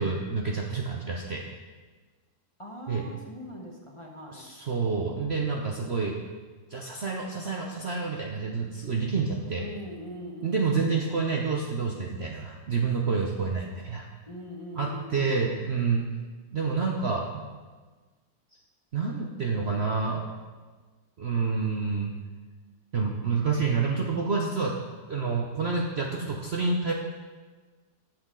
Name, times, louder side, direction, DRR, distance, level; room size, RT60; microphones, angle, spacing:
voice 1, 0.0-1.4 2.9-3.0 4.3-6.2 6.7-9.7 10.4-14.1 14.7-16.0 16.5-17.4 18.9-20.4 21.2-22.1 22.9-24.8 25.1-26.9, right 4 dB, 50° right, 0 dB, 0.8 m, -28 dB
voice 2, 2.6-4.5 9.6-11.1 14.3-15.6, left 1 dB, 20° left, -1 dB, 0.9 m, -42 dB
14.5 x 7.7 x 3.8 m, 1.4 s
omnidirectional pair, 1.9 m